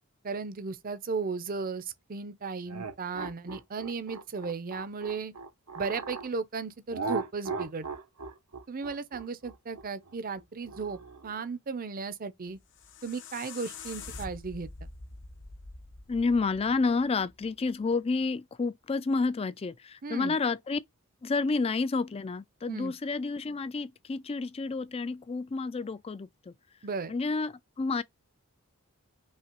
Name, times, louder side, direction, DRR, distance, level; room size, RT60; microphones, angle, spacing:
voice 1, 0.2-1.8 2.1-5.3 5.8-7.9 8.7-12.6 13.0-14.7 20.0-20.3 22.7-22.9 26.8-27.1, right 4 dB, 40° right, 0.6 m, -35 dB
sound 1, 2.7-6.3 6.9-11.4, right 4 dB, 85° right, 0.8 m, -38 dB
sound 2, 12.5-17.6, left 4 dB, 55° left, 0.9 m, -45 dB
voice 2, 16.1-20.8 21.2-26.5 27.1-28.0, left 4 dB, 25° left, 0.4 m, -30 dB
5.6 x 2.9 x 3.0 m
head